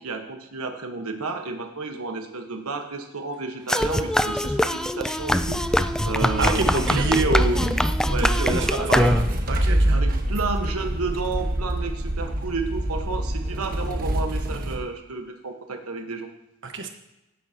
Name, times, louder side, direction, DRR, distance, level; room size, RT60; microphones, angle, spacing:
voice 1, 0.0-7.0 8.1-9.0 9.9-16.3, right 4 dB, 85° right, 4 dB, 1.2 m, -32 dB
mouth music, 3.7-9.5, left 1 dB, 5° left, 0.3 m, -24 dB
sound 1, 5.4-14.8, right 1 dB, 45° right, 1.3 m, -26 dB
voice 2, 6.4-7.9 8.2-10.0 16.6-16.9, right 3 dB, 60° right, 5 dB, 1.4 m, -26 dB
16.5 x 8.6 x 2.9 m, 0.92 s
head